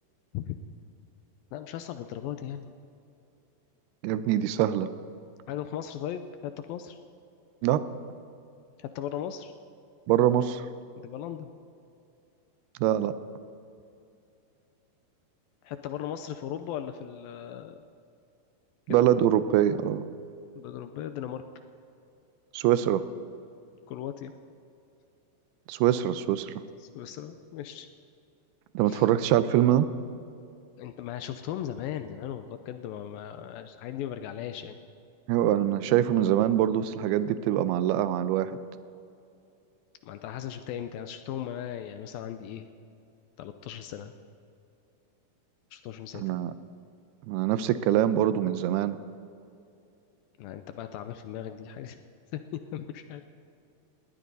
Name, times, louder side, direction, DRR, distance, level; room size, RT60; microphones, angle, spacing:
voice 1, 1.5-2.7 5.5-7.0 8.8-9.5 11.0-11.5 15.6-17.8 18.9-19.1 20.6-21.4 23.9-24.3 26.8-27.9 28.9-29.0 30.8-34.8 40.0-42.7 43.4-44.1 45.7-46.2 50.4-52.0 52.3-53.2, left 10 dB, 80° left, 9 dB, 2.2 m, -37 dB
voice 2, 4.0-4.9 7.6-7.8 10.1-10.7 12.8-13.1 18.9-20.1 22.5-23.0 25.7-26.5 28.8-29.9 35.3-38.6 46.2-46.5 47.3-49.0, right 11 dB, 85° right, 13 dB, 2.6 m, -24 dB
19.5 x 18.0 x 4.1 m, 2.6 s
omnidirectional pair, 4.6 m